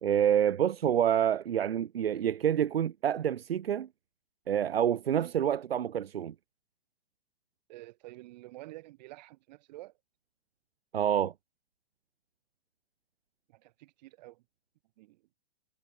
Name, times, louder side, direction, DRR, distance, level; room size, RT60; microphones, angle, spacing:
voice 1, 0.0-3.9 4.5-6.3 10.9-11.3, right 9 dB, 85° right, 0.5 m, -27 dB
voice 2, 5.1-5.4 7.7-9.9 13.5-14.4 15.0-15.2, right 18 dB, 45° right, 5.3 m, -49 dB
hypercardioid pair, 120°, 29 cm